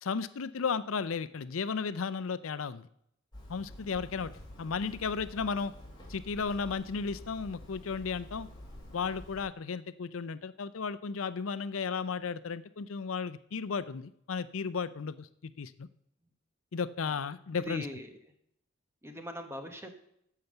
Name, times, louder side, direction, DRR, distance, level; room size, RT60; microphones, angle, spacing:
voice 1, 0.0-2.9 3.5-4.3 4.6-5.7 6.1-8.5 8.9-15.9 16.7-17.8, left 5 dB, 80° left, 15 dB, 0.5 m, -34 dB
Hammer, 3.3-9.4, left 1 dB, 20° left, 3.8 m, -49 dB
voice 2, 17.6-18.2 19.0-20.0, left 1 dB, 15° right, 6 dB, 1.3 m, -42 dB
14.5 x 5.8 x 6.6 m, 0.72 s
head